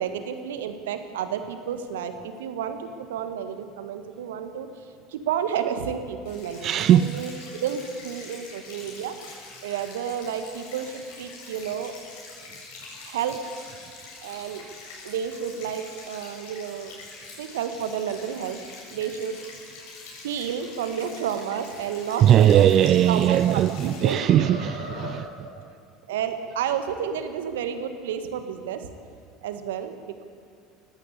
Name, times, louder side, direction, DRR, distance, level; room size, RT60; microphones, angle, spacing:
voice 1, 0.0-4.7 5.1-9.2 9.6-11.9 13.0-13.4 14.2-14.7 15.0-17.0 17.4-18.6 18.9-19.4 20.2-24.2 25.5-25.6 26.1-28.9 29.4-30.2, right 8 dB, 75° right, 1.7 m, -31 dB
sound 1, 6.2-24.1, left 3 dB, 70° left, 7.3 m, -44 dB
voice 2, 6.6-7.2 22.2-25.5, right 11 dB, 45° right, 0.4 m, -19 dB
sound 2, 22.6-23.7 24.0-25.4, left 4 dB, 90° left, 5.3 m, -39 dB
20.0 x 16.0 x 8.6 m
hypercardioid pair, 70°, 0 cm